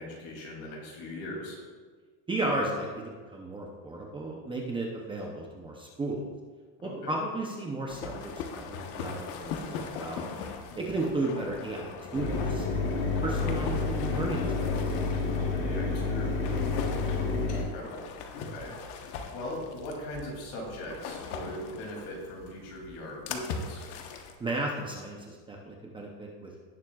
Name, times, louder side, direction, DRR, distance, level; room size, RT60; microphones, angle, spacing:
voice 1, 0.0-1.6 6.8-7.1 10.7-11.0 15.3-16.8 17.1-19.0 19.3-23.8, left 1 dB, 55° left, -1 dB, 2.9 m, -40 dB
voice 2, 2.3-6.2 6.8-10.3 10.8-15.1 24.4-26.5, right 2 dB, 10° right, -1 dB, 0.6 m, -34 dB
sound 1, 7.9-24.4, left 5 dB, 70° left, 1.2 m, -40 dB
Mechanisms, 12.2-17.6, left 3 dB, 85° left, 2.5 m, -29 dB
17.0 x 7.2 x 2.4 m, 1.5 s
cardioid pair, 160°, 47 cm